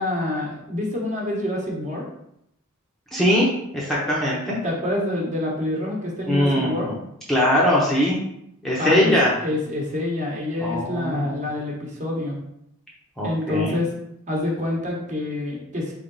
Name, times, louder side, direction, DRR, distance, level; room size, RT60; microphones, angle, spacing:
voice 1, 0.0-2.0 4.6-6.9 8.8-9.1 9.4-12.4 13.2-13.9 14.3-15.9, left 1 dB, 35° right, -2 dB, 1.2 m, -27 dB
voice 2, 3.1-3.5 3.7-4.6 6.2-7.0 7.3-8.2 8.6-9.3 10.6-11.4 13.2-13.7, left 1 dB, ahead, -6 dB, 0.8 m, -21 dB
3.8 x 3.3 x 3.9 m, 0.78 s
head